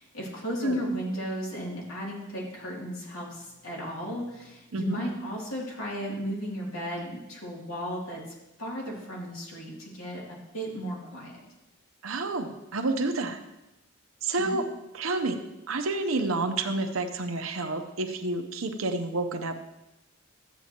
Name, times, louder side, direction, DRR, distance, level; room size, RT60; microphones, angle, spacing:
voice 1, 0.0-8.2 8.6-11.4 14.4-14.6, equal, 85° left, -4 dB, 2.8 m, -34 dB
voice 2, 12.0-13.4 14.2-14.7 14.9-15.4 15.7-19.6, right 3 dB, 75° right, 7 dB, 0.9 m, -29 dB
13.0 x 8.3 x 3.0 m, 0.97 s
head